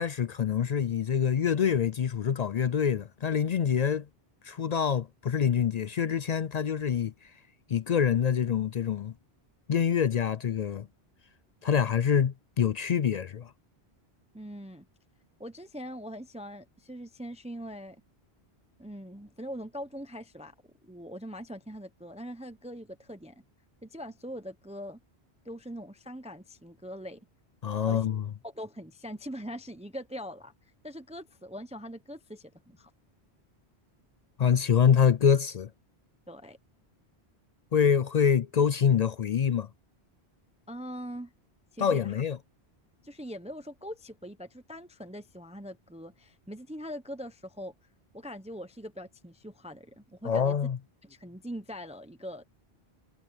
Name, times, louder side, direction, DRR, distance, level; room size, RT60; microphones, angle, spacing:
voice 1, 0.0-4.1 4.4-7.1 7.7-9.1 9.7-10.9 11.6-13.5 27.6-28.3 34.4-35.7 37.7-39.7 41.8-42.4 50.2-50.8, left 7 dB, 55° left, 0.5 m, -25 dB
voice 2, 14.3-14.8 15.4-18.0 18.8-23.4 23.8-25.0 25.4-27.3 27.8-28.1 28.4-30.5 30.8-32.9 36.3-36.6 40.7-41.3 41.7-42.1 43.0-47.7 48.1-50.6 51.0-52.4, equal, 5° right, 0.9 m, -42 dB
omnidirectional pair, 1.1 m